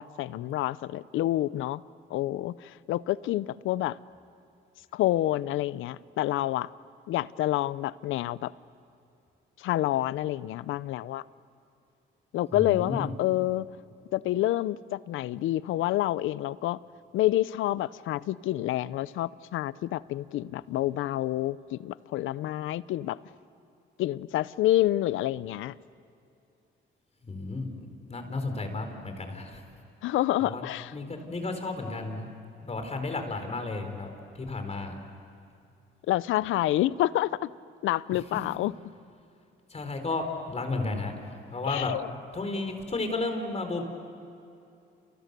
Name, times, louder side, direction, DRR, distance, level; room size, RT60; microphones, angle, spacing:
voice 1, 0.0-1.8 2.1-4.0 4.9-6.7 7.1-8.5 9.6-11.2 12.3-13.7 14.1-16.8 17.1-23.2 24.0-25.7 30.0-30.9 36.1-37.5 37.8-38.7 41.7-42.0, left 15 dB, 85° left, 19 dB, 0.6 m, -28 dB
voice 2, 12.5-13.1 27.2-27.8 28.1-29.6 30.4-30.6 30.9-32.3 32.6-35.0 39.7-41.9 42.3-43.8, left 3 dB, 35° left, 6 dB, 4.2 m, -33 dB
30.0 x 29.0 x 6.8 m, 2.6 s
cardioid pair, 90°, 20 cm